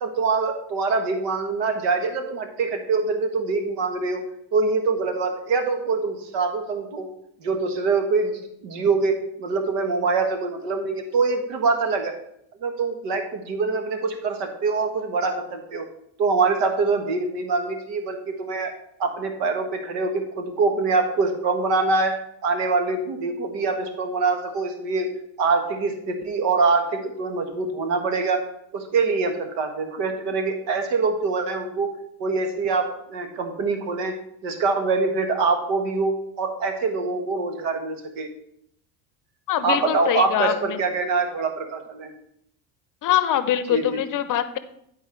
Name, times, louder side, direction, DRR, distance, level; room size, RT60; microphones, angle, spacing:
voice 1, 0.0-4.2 4.5-7.1 7.4-12.1 12.6-15.9 16.2-18.7 19.0-22.2 22.4-25.1 25.4-28.4 28.7-31.9 32.2-34.1 34.4-38.3 39.6-42.1 43.7-44.0, right 4 dB, 70° right, 6 dB, 1.6 m, -24 dB
voice 2, 39.5-40.8 43.0-44.6, left 11 dB, 45° left, 13 dB, 0.7 m, -23 dB
10.5 x 4.6 x 4.5 m, 0.73 s
supercardioid pair, 90°, 44 cm